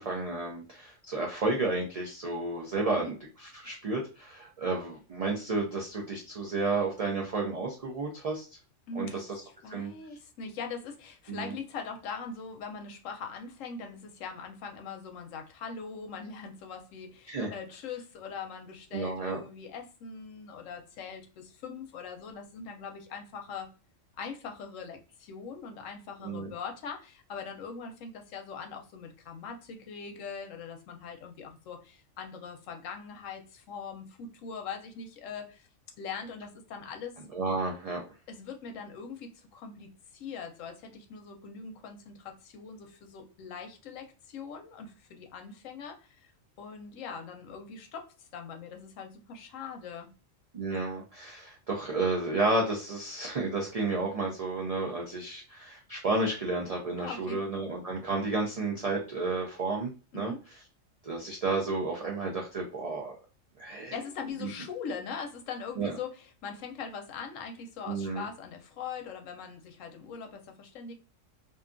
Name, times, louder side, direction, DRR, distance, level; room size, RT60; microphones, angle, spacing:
voice 1, 0.0-3.1 3.5-8.5 9.0-9.2 9.7-9.9 11.3-11.5 17.3-17.5 18.9-19.4 26.2-26.5 37.3-38.0 50.5-60.3 61.0-63.2 63.6-64.0 64.4-64.5 65.8-65.9 67.9-68.2, right 3 dB, 75° right, -1 dB, 0.3 m, -31 dB
voice 2, 8.9-23.7 24.2-35.7 36.0-37.2 38.3-46.3 46.6-50.1 57.0-57.4 60.1-60.4 63.9-70.9, left 5 dB, 85° left, 4 dB, 1.0 m, -41 dB
2.6 x 2.3 x 2.4 m, 0.34 s
omnidirectional pair, 1.3 m